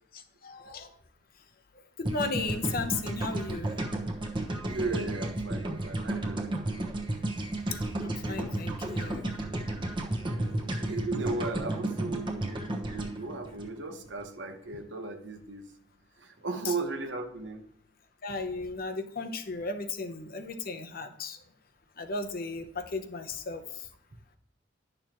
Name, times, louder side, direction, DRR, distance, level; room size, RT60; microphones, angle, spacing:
voice 1, 0.1-0.9 2.0-3.7 8.0-9.4 16.6-16.7 18.2-21.4 22.0-23.6, left 3 dB, 55° left, 7 dB, 0.8 m, -35 dB
sound 1, 2.0-14.3, right 1 dB, 25° right, 1.0 m, -33 dB
voice 2, 4.7-6.9 10.2-15.7 16.2-17.7, right 3 dB, 80° right, 5 dB, 1.1 m, -36 dB
10.5 x 6.5 x 3.0 m, 0.67 s
head